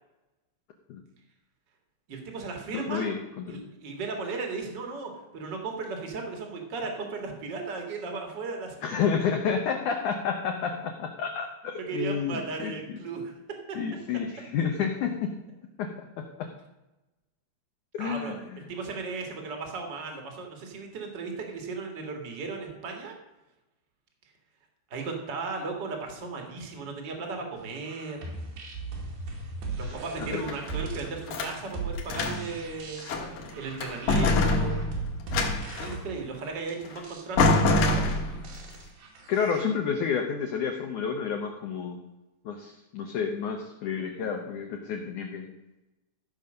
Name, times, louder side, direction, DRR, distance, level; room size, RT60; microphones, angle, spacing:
voice 1, 2.1-3.1 3.5-8.8 11.7-13.3 18.0-18.3 18.7-23.1 24.9-28.2 29.7-33.0 33.5-34.8 35.8-38.1, right 4 dB, 50° right, 3 dB, 1.3 m, -36 dB
voice 2, 2.7-3.6 8.8-12.7 13.7-15.3 15.8-15.9 16.2-16.5 17.9-18.6 30.2-30.5 39.3-42.0 42.5-45.5, left 6 dB, 85° left, 3 dB, 1.7 m, -30 dB
sound 1, 27.7-39.6, right 3 dB, 85° right, 4.3 m, -38 dB
sound 2, 30.2-31.6 32.0-32.6 33.0-33.5 33.8-36.0 36.9-37.0 37.4-38.6, left 2 dB, 65° left, 2.1 m, -25 dB
15.0 x 5.4 x 6.4 m, 1.0 s
omnidirectional pair, 4.9 m